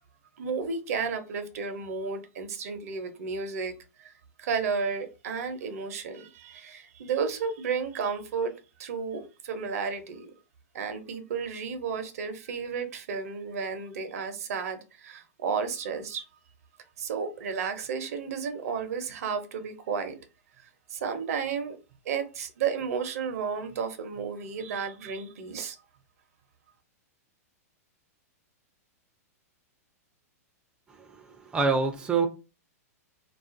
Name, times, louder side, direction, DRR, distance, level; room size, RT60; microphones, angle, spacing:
voice 1, 0.4-4.1 4.4-8.5 8.8-10.3 10.7-16.2 17.0-20.2 20.9-21.8 22.0-25.8, right 5 dB, 65° right, 0.6 m, -32 dB
voice 2, 31.0-32.3, right 4 dB, 10° right, 0.4 m, -26 dB
2.4 x 2.4 x 2.5 m
hypercardioid pair, 120°, 9 cm